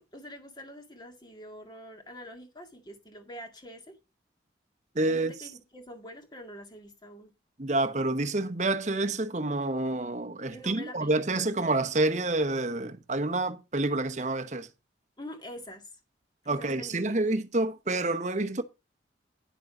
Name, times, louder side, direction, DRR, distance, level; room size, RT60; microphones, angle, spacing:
voice 1, 0.0-3.9 5.1-7.3 10.5-11.3 15.2-15.9 16.4-17.2, equal, 25° left, 2.0 m, -45 dB
voice 2, 4.9-5.3 7.6-14.7 16.5-18.6, right 2 dB, 40° right, 0.9 m, -28 dB
10.0 x 6.8 x 4.9 m
head